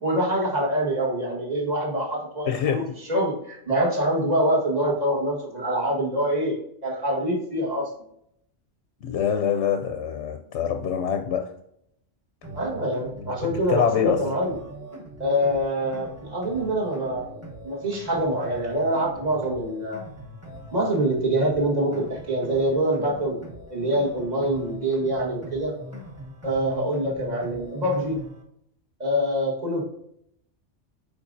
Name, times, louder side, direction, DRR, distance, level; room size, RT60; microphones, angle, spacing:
voice 1, 0.0-6.5 6.8-7.9 12.5-14.6 15.2-17.3 17.6-20.0 20.7-23.4 23.7-25.7 26.4-28.2 29.0-29.8, right 1 dB, 35° right, -3 dB, 1.7 m, -25 dB
voice 2, 2.5-3.0 9.0-11.5 13.5-14.2, left 8 dB, 75° left, 6 dB, 0.9 m, -25 dB
sound 1, 12.4-28.4, equal, 15° right, 1.1 m, -41 dB
7.2 x 5.0 x 2.6 m, 0.73 s
omnidirectional pair, 1.2 m